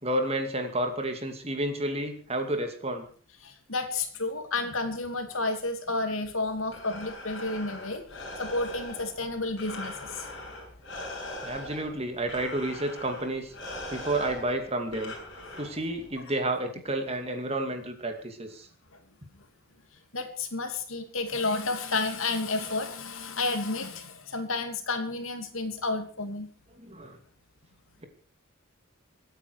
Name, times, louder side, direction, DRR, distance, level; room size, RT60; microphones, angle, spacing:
voice 1, 0.0-3.1 11.4-13.5 13.9-15.1 15.6-18.7 26.8-27.2, right 1 dB, 30° right, 5 dB, 2.6 m, -30 dB
voice 2, 3.4-10.3 20.1-26.5, left 3 dB, 75° left, 7 dB, 2.8 m, -31 dB
Breathing, 6.5-16.1, left 2 dB, 55° left, 7.3 m, -41 dB
24.5 x 9.6 x 5.0 m, 0.43 s
head